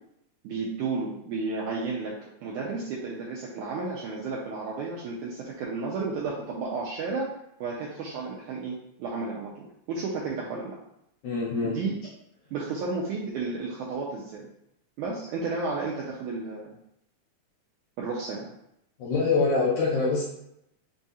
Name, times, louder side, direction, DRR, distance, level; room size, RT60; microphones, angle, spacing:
voice 1, 0.4-2.1 2.4-7.3 7.6-9.5 9.9-10.7 11.6-12.0 12.5-14.5 15.0-16.8 18.0-18.5, right 4 dB, 80° right, -4 dB, 1.8 m, -32 dB
voice 2, 11.2-11.7 19.0-20.2, left 4 dB, 70° left, -4 dB, 1.9 m, -24 dB
5.4 x 2.4 x 4.1 m, 0.79 s
omnidirectional pair, 4.1 m